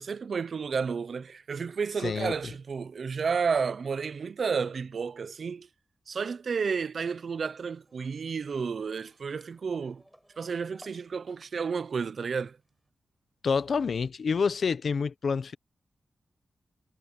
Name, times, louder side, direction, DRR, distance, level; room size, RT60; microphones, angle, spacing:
voice 1, 0.0-5.7 6.1-10.0 10.4-12.6, right 5 dB, 55° right, 0.6 m, -31 dB
voice 2, 2.0-2.3 13.4-15.5, left 5 dB, 60° left, 0.8 m, -27 dB
sound 1, 7.1-11.5 11.7-12.9, equal, 5° right, 4.5 m, -61 dB
wide cardioid pair, 150°, 0 cm